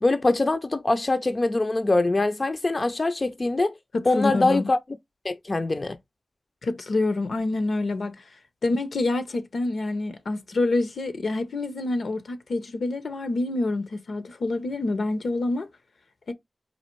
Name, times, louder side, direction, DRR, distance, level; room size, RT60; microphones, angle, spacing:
voice 1, 0.0-3.7 4.1-4.8 5.2-6.0, left 2 dB, 45° left, 0.4 m, -23 dB
voice 2, 3.9-4.7 6.6-8.2 8.6-15.7 16.3-16.4, left 2 dB, 80° left, 0.7 m, -27 dB
4.2 x 2.5 x 4.4 m
cardioid pair, 45°, 0 cm